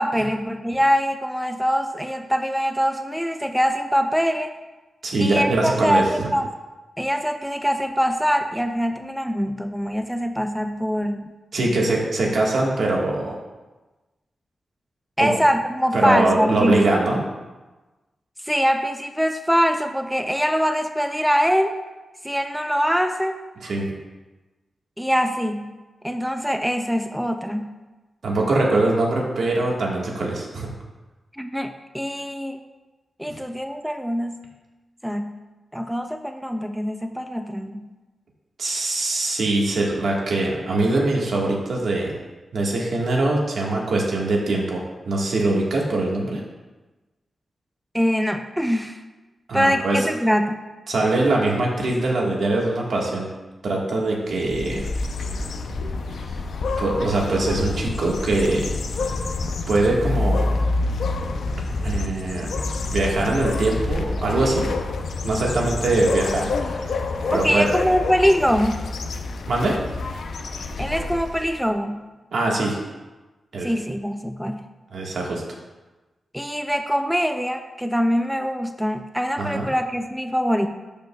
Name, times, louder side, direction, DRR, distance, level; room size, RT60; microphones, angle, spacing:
voice 1, 0.0-4.6 5.2-6.5 7.0-11.2 15.2-16.9 18.4-21.8 22.2-23.4 25.0-25.8 26.0-27.8 31.4-32.6 33.2-34.4 35.0-35.4 35.7-37.9 47.9-49.0 49.5-50.6 67.3-68.9 70.8-72.1 73.6-74.7 76.3-80.7, equal, ahead, 6 dB, 0.3 m, -23 dB
voice 2, 5.0-6.0 11.5-13.4 15.2-15.4 15.9-17.2 23.6-23.9 28.2-30.7 33.2-33.4 38.6-42.1 42.5-46.4 49.5-50.0 50.9-53.3 53.6-54.9 56.2-56.3 56.8-58.7 59.7-60.5 61.8-62.6 62.9-64.7 65.2-66.9 67.3-67.7 69.5-69.8 72.3-72.8 73.5-73.7 74.9-75.4 79.4-79.7, right 2 dB, 70° right, -2 dB, 1.5 m, -22 dB
sound 1, 54.3-71.6, left 3 dB, 75° left, 0.5 m, -27 dB
12.0 x 5.2 x 2.3 m, 1.2 s
wide cardioid pair, 125°, 0 cm